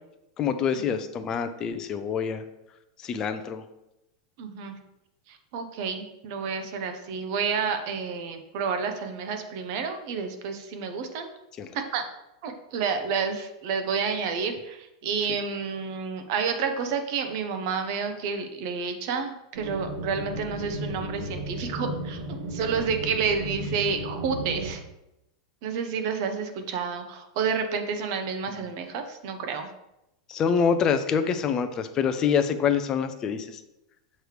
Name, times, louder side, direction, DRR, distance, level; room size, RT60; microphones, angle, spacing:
voice 1, 0.4-2.4 3.0-3.6 11.6-11.7 30.3-33.6, left 7 dB, 20° left, 8 dB, 0.4 m, -26 dB
voice 2, 4.4-4.7 5.3-11.3 11.7-12.0 12.4-24.8 25.6-29.7, right 6 dB, 50° right, 7 dB, 0.7 m, -30 dB
sound 1, 19.5-24.7, right 1 dB, 85° right, 1.8 m, -34 dB
6.6 x 3.1 x 4.9 m, 0.88 s
supercardioid pair, 160°, 3 cm